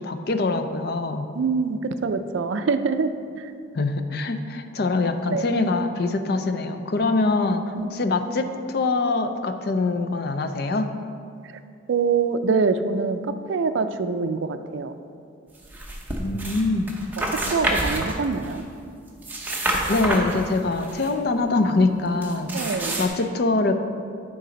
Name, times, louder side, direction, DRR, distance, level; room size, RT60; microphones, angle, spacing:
voice 1, 0.0-1.3 3.7-7.6 7.9-10.9 16.1-17.0 19.9-22.5 23.0-23.7, left 3 dB, 50° left, 7 dB, 0.4 m, -24 dB
voice 2, 1.3-3.5 5.3-5.5 7.8-7.9 11.9-13.2 13.5-14.9 17.5-18.6 22.5-23.0, right 4 dB, 70° right, 10 dB, 0.4 m, -24 dB
sound 1, 15.6-16.6 16.9-18.6 19.1-21.1 22.2-23.1, right 1 dB, 10° right, 0.7 m, -28 dB
9.3 x 4.0 x 5.1 m, 2.4 s
head